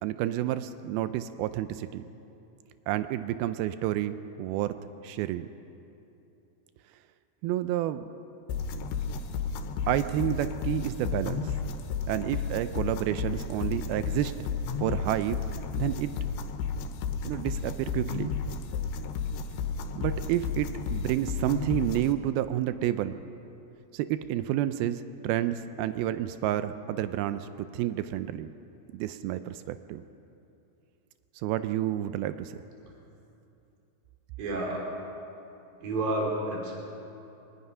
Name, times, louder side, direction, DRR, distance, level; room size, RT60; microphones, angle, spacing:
voice 1, 0.0-2.0 2.9-4.7 5.0-5.5 7.4-8.1 9.9-11.5 12.1-14.3 14.8-15.4 15.8-16.1 17.2-18.3 20.0-23.2 23.9-27.5 27.7-28.5 28.9-30.0 31.4-32.6, right 13 dB, 90° right, 11 dB, 2.1 m, -30 dB
sound 1, 8.5-22.1, left 5 dB, 85° left, 3.2 m, -33 dB
voice 2, 34.4-34.9 35.8-36.7, right 2 dB, 55° right, -1 dB, 4.7 m, -30 dB
24.5 x 20.0 x 5.6 m, 2.8 s
omnidirectional pair, 5.0 m